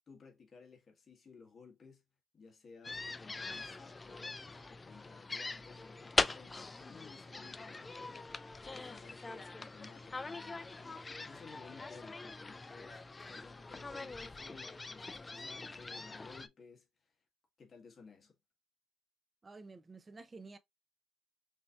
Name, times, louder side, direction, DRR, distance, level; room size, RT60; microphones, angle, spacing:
voice 1, 0.1-2.0 2.3-4.4 4.7-8.2 8.7-17.1 17.6-18.4, left 5 dB, 45° left, 1.6 m, -57 dB
sound 1, 2.8-16.5, left 3 dB, 25° left, 0.4 m, -41 dB
voice 2, 19.4-20.6, right 3 dB, 30° right, 0.7 m, -51 dB
6.1 x 2.8 x 2.5 m
cardioid pair, 90°, 0 cm